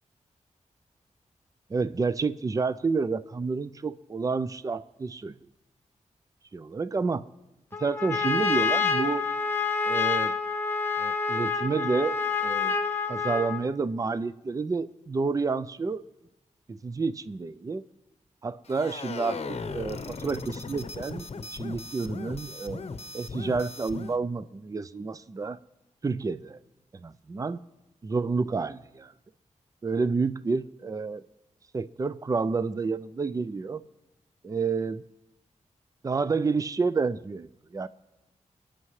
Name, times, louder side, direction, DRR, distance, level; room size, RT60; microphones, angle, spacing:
voice 1, 1.7-5.4 6.5-7.3 7.8-9.3 9.8-10.4 11.0-12.8 13.1-16.0 16.7-17.8 18.4-21.3 21.5-22.8 23.1-25.6 26.0-26.6 26.9-27.6 28.0-29.1 29.8-31.2 31.7-33.8 34.4-35.0 36.0-37.9, right 4 dB, 25° right, 15 dB, 0.4 m, -29 dB
Trumpet, 7.7-13.7, left 5 dB, 15° left, 1.2 m, -27 dB
sound 1, 18.7-24.2, left 4 dB, 55° left, 0.8 m, -38 dB
28.5 x 9.9 x 3.2 m, 0.99 s
wide cardioid pair, 100°, 13 cm